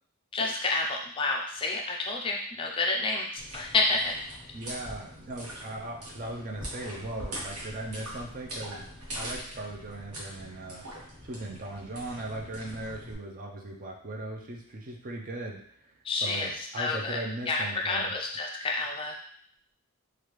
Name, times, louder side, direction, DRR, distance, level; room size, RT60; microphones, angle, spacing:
voice 1, 0.3-4.1 16.0-16.5 16.8-17.2 17.5-19.2, left 3 dB, 25° left, 0 dB, 0.3 m, -29 dB
sound 1, 3.4-13.1, equal, 85° right, 1.1 m, -42 dB
voice 2, 4.5-8.9 9.2-10.9 11.2-18.1, right 2 dB, 40° right, 0 dB, 0.5 m, -38 dB
3.2 x 2.4 x 3.1 m, 0.62 s
head